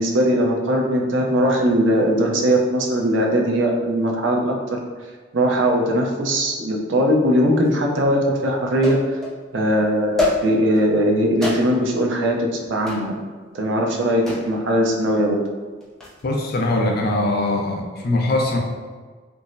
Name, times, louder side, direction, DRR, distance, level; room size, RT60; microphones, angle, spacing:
voice 1, 0.0-4.8 5.3-9.0 9.5-13.2 13.5-15.4, equal, 70° right, 0 dB, 0.5 m, -20 dB
sound 1, 7.6-7.7 8.8-9.4 10.2-10.8 11.4-12.0 12.9-13.1 14.3-14.6 15.8-16.2, left 2 dB, 5° left, 0.5 m, -26 dB
voice 2, 16.2-18.6, left 2 dB, 50° left, 0 dB, 0.5 m, -21 dB
4.5 x 2.0 x 2.6 m, 1.5 s
head